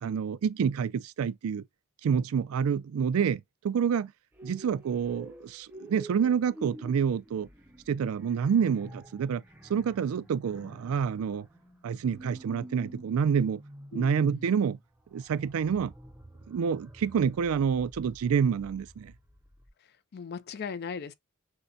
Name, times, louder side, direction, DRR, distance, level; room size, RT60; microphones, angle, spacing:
voice 1, 0.0-1.6 2.0-4.1 4.4-7.5 7.9-9.4 9.7-11.5 11.8-13.6 13.9-14.8 15.1-15.9 16.5-19.1, right 7 dB, 85° right, 0.4 m, -28 dB
sound 1, 4.3-19.7, right 1 dB, 10° right, 0.5 m, -49 dB
voice 2, 13.9-14.5 20.1-21.1, left 6 dB, 50° left, 0.4 m, -38 dB
6.4 x 2.2 x 2.6 m
head